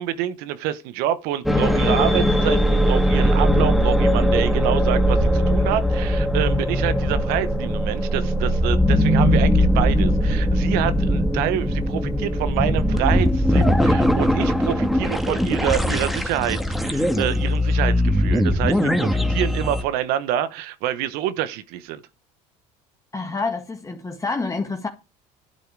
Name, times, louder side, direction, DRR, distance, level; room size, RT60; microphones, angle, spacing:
voice 1, 0.0-22.0, right 11 dB, 75° right, 1.2 m, -27 dB
sound 1, 1.4-19.8, equal, ahead, 2.0 m, -20 dB
voice 2, 23.1-24.9, left 3 dB, 20° left, 1.7 m, -27 dB
11.5 x 8.3 x 4.8 m
supercardioid pair, 85°, 16 cm